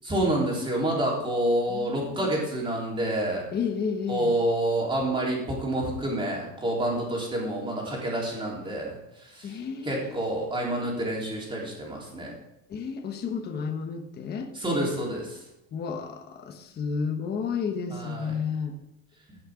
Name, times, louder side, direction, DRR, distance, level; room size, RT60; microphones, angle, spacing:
voice 1, 0.0-3.5 4.1-9.6 9.8-12.3 14.6-15.4 17.9-18.3, right 1 dB, 15° right, -3 dB, 3.5 m, -28 dB
voice 2, 1.7-2.3 3.5-4.3 9.4-10.1 12.7-14.5 15.7-18.7, left 6 dB, 25° left, 3 dB, 1.2 m, -32 dB
15.5 x 6.5 x 5.0 m, 0.88 s
cardioid pair, 160°, 37 cm